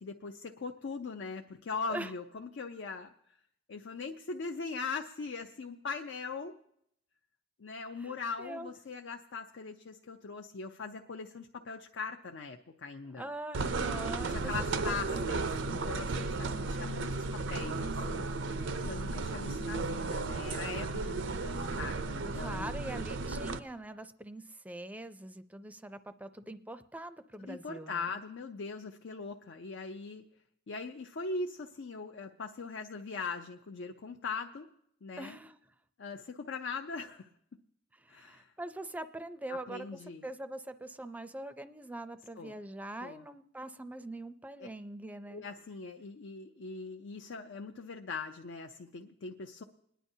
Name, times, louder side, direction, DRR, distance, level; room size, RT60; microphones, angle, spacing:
voice 1, 0.0-3.1 3.7-6.6 7.6-13.3 14.3-18.3 18.8-22.7 27.4-30.2 30.7-34.7 35.0-35.4 36.0-37.3 38.1-38.5 39.5-40.3 42.4-42.6 43.0-43.2 44.6-44.7 45.3-49.6, left 4 dB, 75° left, 3 dB, 0.5 m, -41 dB
voice 2, 8.0-8.7 13.2-14.5 14.8-15.2 22.2-28.2 35.2-35.6 37.9-39.9 40.2-45.4, right 1 dB, 10° right, 11 dB, 0.4 m, -43 dB
sound 1, 13.5-23.6, right 3 dB, 90° right, 0.6 m, -34 dB
29.5 x 10.0 x 2.7 m, 0.75 s
head